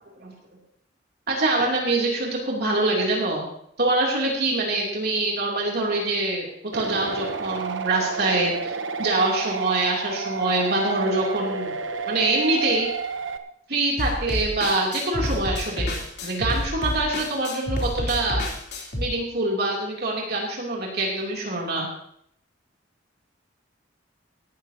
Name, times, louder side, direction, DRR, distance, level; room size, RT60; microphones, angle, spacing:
voice 1, 1.3-3.4 3.8-6.5 6.7-8.7 9.0-11.8 12.1-12.9 13.7-16.0 16.2-18.4 19.0-21.9, right 2 dB, 55° right, -2 dB, 3.1 m, -24 dB
sound 1, 6.7-13.4, right 5 dB, 90° right, 1.0 m, -30 dB
sound 2, 14.0-19.0, left 1 dB, 60° left, 3.5 m, -29 dB
18.0 x 14.0 x 2.9 m, 0.70 s
head